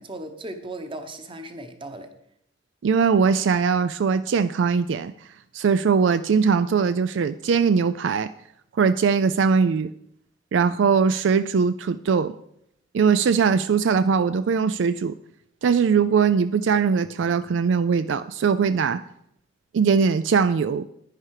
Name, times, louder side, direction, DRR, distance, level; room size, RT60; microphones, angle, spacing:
voice 1, 0.0-2.1, right 1 dB, 25° right, 7 dB, 1.1 m, -37 dB
voice 2, 2.8-5.1 5.5-8.3 8.8-9.9 10.5-12.3 12.9-15.1 15.6-19.0 19.7-20.9, right 6 dB, 70° right, 13 dB, 0.4 m, -21 dB
10.0 x 10.0 x 4.9 m, 0.74 s
head